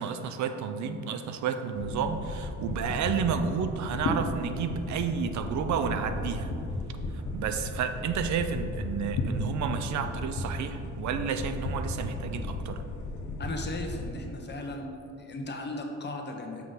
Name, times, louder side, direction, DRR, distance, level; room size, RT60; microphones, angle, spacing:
voice 1, 0.0-6.5 7.3-12.8, right 6 dB, 70° right, 8 dB, 0.6 m, -31 dB
sound 1, 1.8-14.1, left 2 dB, 90° left, 1.0 m, -35 dB
voice 2, 13.4-14.9 15.2-16.6, left 2 dB, 35° left, 2 dB, 1.0 m, -36 dB
6.4 x 5.9 x 4.0 m, 2.7 s
cardioid pair, 90°, 30 cm